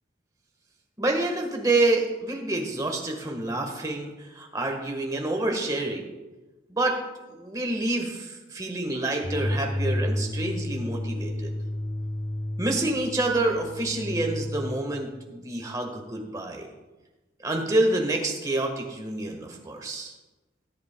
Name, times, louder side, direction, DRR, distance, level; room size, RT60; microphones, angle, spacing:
voice 1, 1.0-6.1 6.7-7.0 7.3-11.5 12.6-16.7 17.4-20.1, right 2 dB, 20° right, 2 dB, 1.4 m, -27 dB
sound 1, 9.2-14.8, left 1 dB, 15° left, 0.5 m, -31 dB
18.5 x 8.5 x 2.2 m, 1.1 s
head